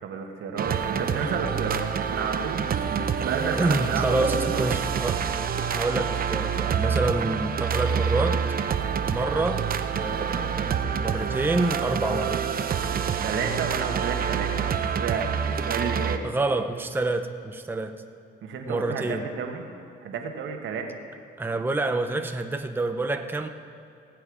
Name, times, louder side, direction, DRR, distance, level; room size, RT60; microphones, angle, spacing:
voice 1, 0.0-4.2 4.5-4.7 13.2-16.2 18.4-19.6 20.0-20.9, right 6 dB, 75° right, 3 dB, 1.5 m, -31 dB
sound 1, 0.6-16.2, right 7 dB, 50° right, 0.7 m, -27 dB
voice 2, 3.5-5.2 5.7-8.4 9.0-9.6 9.9-12.4 16.2-18.0 18.7-19.3 21.4-23.5, right 2 dB, 10° right, 6 dB, 0.7 m, -27 dB
18.5 x 7.8 x 4.9 m, 2.6 s
cardioid pair, 90°, 20 cm